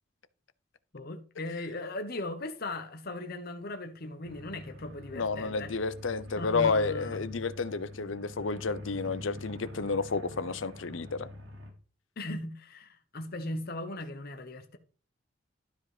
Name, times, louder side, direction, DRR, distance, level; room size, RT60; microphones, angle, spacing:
voice 1, 0.9-5.8 6.4-7.1 12.2-14.8, left 2 dB, 50° left, 1.1 m, -38 dB
sound 1, 4.2-11.7, left 1 dB, 80° right, 2.9 m, -44 dB
voice 2, 5.1-11.3, left 4 dB, 70° left, 0.8 m, -31 dB
12.0 x 5.2 x 5.0 m
head